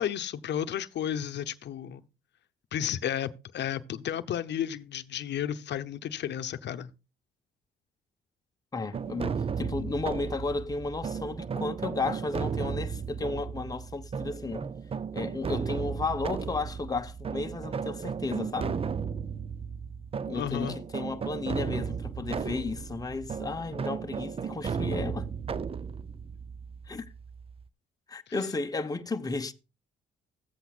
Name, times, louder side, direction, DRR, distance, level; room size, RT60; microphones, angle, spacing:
voice 1, 0.0-2.0 2.7-6.9 20.3-20.8 28.3-28.4, left 10 dB, 65° left, 0.8 m, -33 dB
voice 2, 8.7-14.7 15.1-18.8 20.3-25.3 26.9-27.1 28.1-29.5, left 3 dB, 20° left, 0.9 m, -33 dB
sound 1, 8.9-27.6, right 6 dB, 30° right, 0.5 m, -35 dB
14.5 x 8.2 x 2.4 m
cardioid pair, 90°, 20 cm